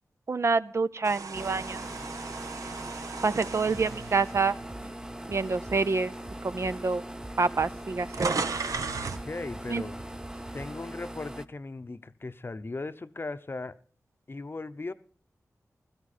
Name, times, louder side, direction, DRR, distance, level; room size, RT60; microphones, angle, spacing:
voice 1, 0.3-1.9 3.2-4.5 5.3-6.1 6.4-7.0 7.4-8.5 9.7-9.8, right 4 dB, 55° right, 13 dB, 0.6 m, -27 dB
sound 1, 1.0-5.3 5.8-6.0 6.9-7.0 7.2-9.3, right 4 dB, 75° right, 0.9 m, -36 dB
sound 2, 1.3-11.5, right 1 dB, 10° right, 0.6 m, -41 dB
sound 3, 3.7-10.7, right 1 dB, 35° right, 3.3 m, -48 dB
voice 2, 9.3-10.0 10.5-13.8 14.3-14.9, left 3 dB, 40° left, 12 dB, 0.8 m, -37 dB
16.0 x 12.5 x 4.2 m, 0.40 s
cardioid pair, 50°, 6 cm